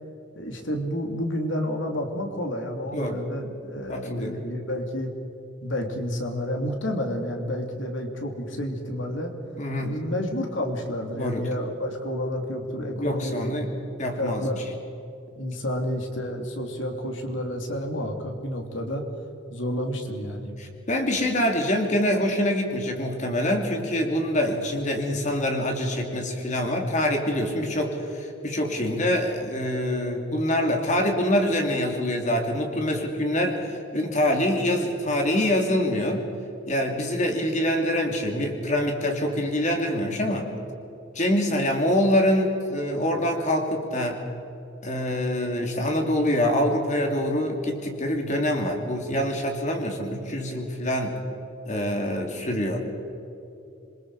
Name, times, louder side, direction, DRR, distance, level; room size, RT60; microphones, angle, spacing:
voice 1, 0.3-5.1 5.6-9.3 9.8-13.7 14.2-14.6 15.4-19.0 19.5-20.6, left 1 dB, 75° left, 3 dB, 2.8 m, -30 dB
voice 2, 3.9-4.4 9.6-10.0 11.1-11.5 13.0-13.7 14.0-14.6 20.6-36.3 36.7-40.5 41.1-44.2 44.8-51.2 51.7-52.8, left 1 dB, 40° left, 2 dB, 2.8 m, -25 dB
27.0 x 23.0 x 4.8 m, 2.9 s
head